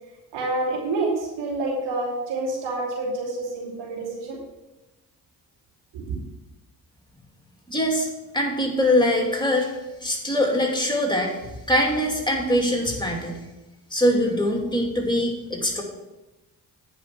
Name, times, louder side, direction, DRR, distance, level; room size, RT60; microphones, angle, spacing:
voice 1, 0.3-4.4 5.9-6.2, right 2 dB, 85° right, -2 dB, 2.8 m, -28 dB
voice 2, 7.7-8.1 8.3-9.7 10.0-11.4 11.7-13.4 13.9-15.8, left 1 dB, 10° left, 0 dB, 2.7 m, -22 dB
9.5 x 5.6 x 6.0 m, 1.0 s
supercardioid pair, 50°, 42 cm